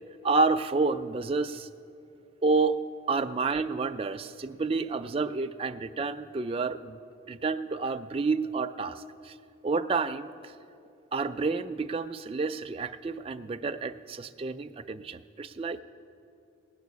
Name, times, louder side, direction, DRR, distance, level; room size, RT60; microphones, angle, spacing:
voice 1, 0.2-1.7 2.4-2.8 3.1-7.0 7.3-9.3 9.6-10.5 11.1-15.8, right 4 dB, 30° right, 7 dB, 0.3 m, -29 dB
17.5 x 6.8 x 9.4 m, 2.6 s
head